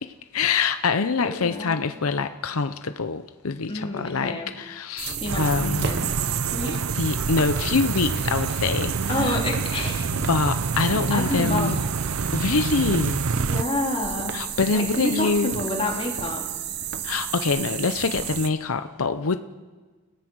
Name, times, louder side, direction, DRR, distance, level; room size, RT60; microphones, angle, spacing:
voice 1, 0.0-6.0 6.9-9.4 10.1-11.8 12.3-13.2 14.3-15.6 17.0-19.4, left 4 dB, 80° left, 9 dB, 0.7 m, -25 dB
voice 2, 1.2-1.8 3.7-4.5 5.2-5.5 5.8-6.1 6.5-6.8 9.1-10.1 11.1-11.7 13.3-14.4 14.7-16.4, left 2 dB, 25° left, 0 dB, 3.3 m, -28 dB
sound 1, 5.0-18.5, right 8 dB, 50° right, 1.0 m, -32 dB
sound 2, 5.3-13.6, right 4 dB, 75° right, 0.6 m, -27 dB
30.0 x 17.5 x 6.3 m, 1.4 s
head